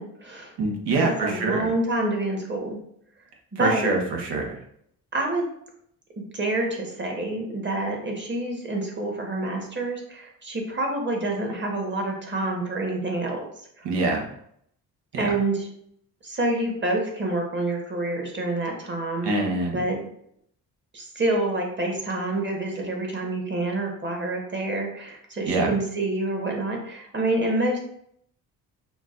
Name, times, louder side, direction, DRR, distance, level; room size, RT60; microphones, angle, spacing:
voice 1, 0.0-0.5 0.9-2.8 3.5-3.9 5.1-5.5 6.3-13.5 13.8-13.9 15.2-15.7 16.2-19.3 19.7-20.0 20.9-27.8, right 2 dB, 30° right, 1 dB, 1.3 m, -27 dB
voice 2, 0.6-1.7 3.6-4.5 13.8-14.2 15.1-15.3 19.2-19.8 25.5-25.7, right 3 dB, 80° right, 1 dB, 1.1 m, -25 dB
6.0 x 2.3 x 2.5 m, 0.69 s
cardioid pair, 75°, 40 cm